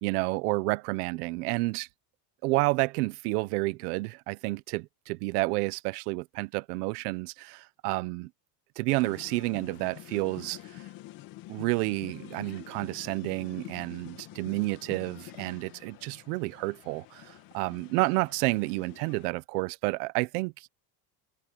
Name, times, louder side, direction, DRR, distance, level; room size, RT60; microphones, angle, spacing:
voice 1, 0.0-1.9 2.4-8.3 8.8-10.8 11.5-20.7, right 23 dB, 80° right, 1.0 m, -30 dB
sound 1, 8.9-19.3, left 16 dB, 45° left, 2.4 m, -47 dB
cardioid pair, 175°, 46 cm